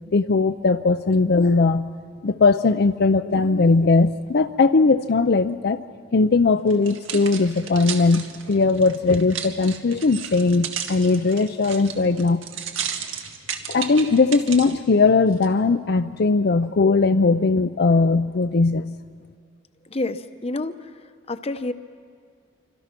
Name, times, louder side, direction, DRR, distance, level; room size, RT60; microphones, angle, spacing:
voice 1, 0.1-1.9 2.2-5.8 6.1-12.4 13.7-18.9, left 3 dB, 55° left, 9 dB, 0.5 m, -19 dB
sound 1, 6.7-14.7 15.3-15.5, right 8 dB, 90° right, 1.9 m, -33 dB
voice 2, 19.9-20.9 21.3-21.7, left 2 dB, 30° left, 11 dB, 0.8 m, -28 dB
27.5 x 25.5 x 6.0 m, 2.1 s
head